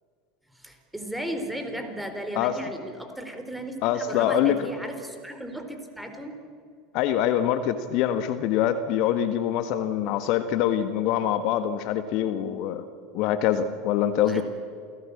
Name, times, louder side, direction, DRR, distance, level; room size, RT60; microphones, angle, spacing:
voice 1, 0.5-6.4 14.2-14.4, right 1 dB, 5° right, 6 dB, 4.2 m, -35 dB
voice 2, 3.8-4.6 6.9-12.8 13.1-14.4, left 10 dB, 55° left, 10 dB, 1.5 m, -24 dB
28.5 x 17.5 x 8.5 m, 2.2 s
hypercardioid pair, 80°, 0 cm